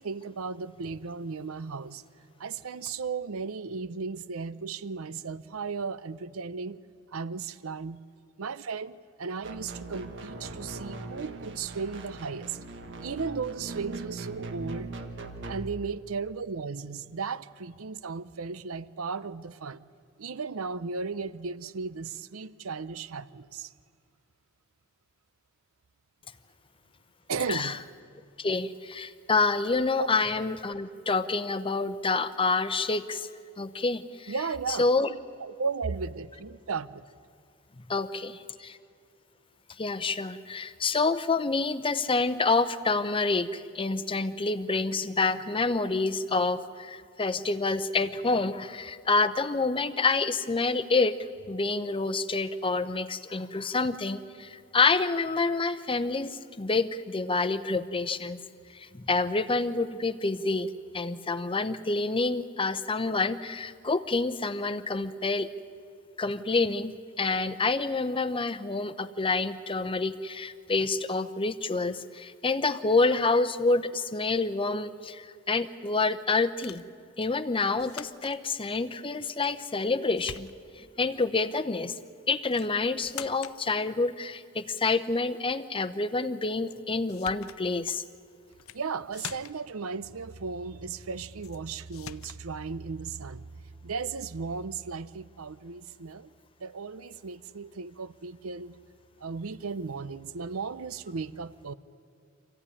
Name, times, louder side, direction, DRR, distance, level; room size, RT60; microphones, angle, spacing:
voice 1, 0.0-2.0 2.4-6.8 7.1-8.0 8.4-12.6 13.0-14.9 15.4-19.8 20.2-23.7 27.3-27.8 30.0-30.1 34.3-37.1 88.7-93.5 93.8-96.3 96.6-98.8 99.2-101.7, right 5 dB, 85° right, 16 dB, 0.7 m, -35 dB
sound 1, 9.4-15.5, right 3 dB, 60° right, 1.5 m, -40 dB
voice 2, 28.4-33.3 33.6-34.3 34.8-35.1 37.9-38.8 39.8-51.1 51.5-58.4 58.7-65.5 66.2-76.8 77.2-81.9 82.3-88.0, left 3 dB, 25° left, 12 dB, 0.8 m, -28 dB
sound 2, 76.6-76.9 77.8-78.4 79.4-79.9 80.2-80.9 82.5-82.7 83.0-83.6 86.7-86.8 87.1-87.6 88.5-88.8 89.1-89.7 91.4-91.6 91.9-92.4, left 9 dB, 80° left, 0.6 m, -43 dB
26.0 x 15.5 x 9.9 m, 2.3 s
head